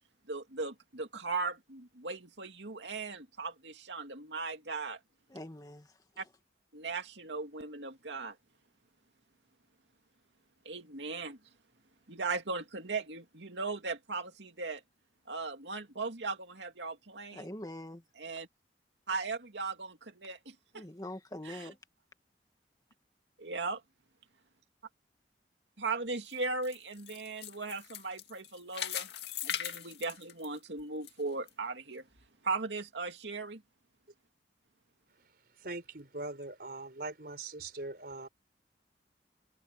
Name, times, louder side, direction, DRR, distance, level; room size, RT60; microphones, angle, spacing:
voice 1, 0.3-5.0 6.2-6.3 6.7-8.4 10.6-11.4 12.1-14.8 15.3-17.5 18.2-18.5 19.1-20.8 21.4-21.7 23.4-23.8 25.8-29.1 29.4-32.0 32.4-33.6, right 3 dB, 80° right, 2.5 m, -38 dB
voice 2, 5.3-5.9 17.3-18.0 20.7-21.8, left 1 dB, 20° left, 2.0 m, -43 dB
sound 1, 26.1-31.1 31.5-31.6 32.2-32.3, left 10 dB, 65° left, 2.2 m, -40 dB
voice 3, 35.6-38.3, right 2 dB, 55° right, 4.7 m, -41 dB
head